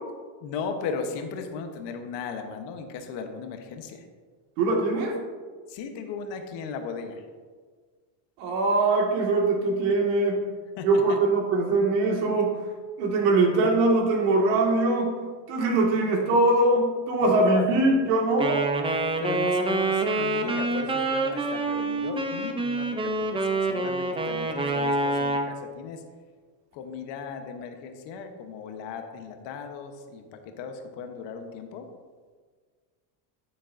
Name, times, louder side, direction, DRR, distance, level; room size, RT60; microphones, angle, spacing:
voice 1, 0.4-4.0 5.7-7.2 10.8-11.2 17.2-18.0 19.2-26.0 26.7-31.9, left 5 dB, 60° left, 6 dB, 1.0 m, -36 dB
voice 2, 4.6-5.2 8.4-10.4 10.8-12.5 13.0-15.2 15.5-18.7, right 2 dB, 80° right, 0 dB, 2.1 m, -22 dB
Wind instrument woodwind instrument, 18.4-25.5, right 2 dB, 10° right, 0.5 m, -26 dB
9.1 x 8.5 x 2.6 m, 1.5 s
supercardioid pair, 125°, 50 cm